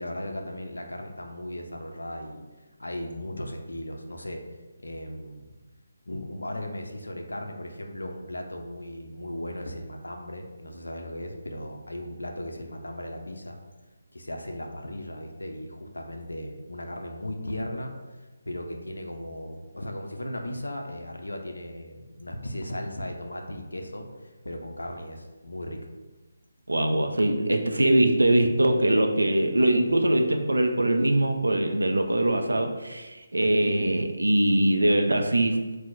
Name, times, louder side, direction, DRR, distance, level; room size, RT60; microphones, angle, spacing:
voice 1, 0.0-2.4 2.8-4.4 4.8-5.4 6.1-13.6 14.1-17.9 18.5-25.9 33.4-33.6, left 1 dB, 75° left, 3 dB, 0.5 m, -36 dB
voice 2, 26.7-35.6, right 1 dB, 75° right, 5 dB, 0.4 m, -22 dB
4.3 x 2.1 x 2.5 m, 1.2 s
figure-of-eight pair, 150°, 0 cm